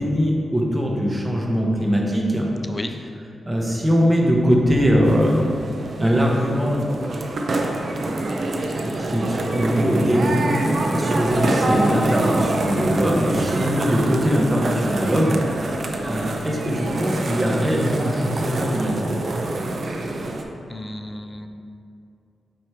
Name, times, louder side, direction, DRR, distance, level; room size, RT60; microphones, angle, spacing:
voice 1, 0.0-2.5 3.5-5.5 6.0-6.9 9.0-10.4 10.9-15.7 16.0-19.1, equal, 15° right, -1 dB, 0.9 m, -21 dB
sound 1, 5.0-20.4, right 2 dB, 50° right, 0.6 m, -25 dB
voice 2, 20.7-21.5, left 1 dB, 25° left, 6 dB, 0.4 m, -33 dB
8.0 x 3.1 x 4.6 m, 2.5 s
wide cardioid pair, 105°, 0 cm